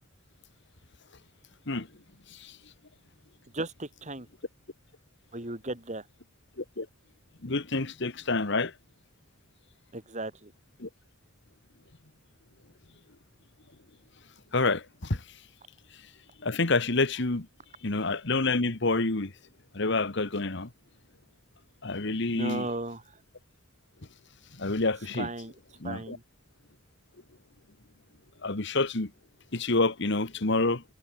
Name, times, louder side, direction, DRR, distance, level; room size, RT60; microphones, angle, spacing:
voice 1, 3.5-4.3 5.3-6.1 9.9-10.5 22.3-23.2 25.2-25.5 25.8-26.2, right 2 dB, 35° right, 6.2 m, -36 dB
voice 2, 7.4-8.7 10.8-10.9 14.5-15.2 16.4-17.5 17.8-19.3 19.7-20.7 21.8-22.7 24.5-25.3 25.8-26.2 28.4-29.1 29.5-30.8, left 3 dB, 60° left, 1.7 m, -28 dB
head